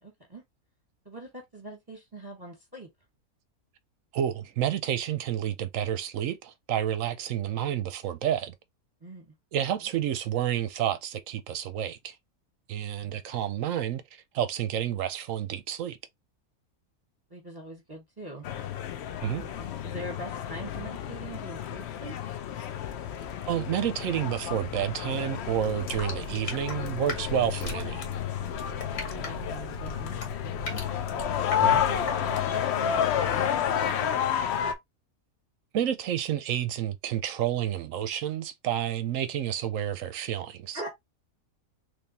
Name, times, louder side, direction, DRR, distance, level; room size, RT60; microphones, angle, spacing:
voice 1, 0.0-0.4 1.0-2.9 9.0-9.3 13.0-13.1 17.3-18.4 19.3-22.1 29.1-30.8 31.8-34.2 40.7-40.9, right 1 dB, 15° right, 1.3 m, -43 dB
voice 2, 4.1-8.5 9.5-12.2 12.7-16.0 19.2-19.4 23.5-28.0 31.6-31.8 35.7-40.8, right 10 dB, 70° right, 0.9 m, -30 dB
sound 1, 18.4-34.7, left 9 dB, 65° left, 0.7 m, -31 dB
sound 2, 25.4-32.6, left 1 dB, 85° left, 2.0 m, -39 dB
3.5 x 3.2 x 2.7 m
omnidirectional pair, 1.6 m